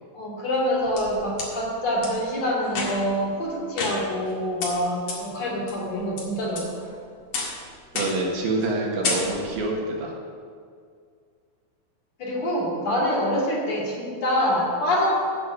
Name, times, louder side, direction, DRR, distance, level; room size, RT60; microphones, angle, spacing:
voice 1, 0.1-6.7 12.2-15.3, equal, 50° left, -5 dB, 3.6 m, -25 dB
sound 1, 0.5-1.5 2.0-2.1 2.7-3.2 3.8-4.3 4.6-4.7 5.1-5.2 5.7-6.2 6.6-6.9 7.3-7.6 8.0-8.3 8.6-8.8 9.0-9.6, left 3 dB, 70° left, 3.7 m, -30 dB
voice 2, 7.9-10.2, right 2 dB, 75° right, -1 dB, 3.2 m, -26 dB
9.5 x 6.5 x 8.5 m, 2.2 s
omnidirectional pair, 4.1 m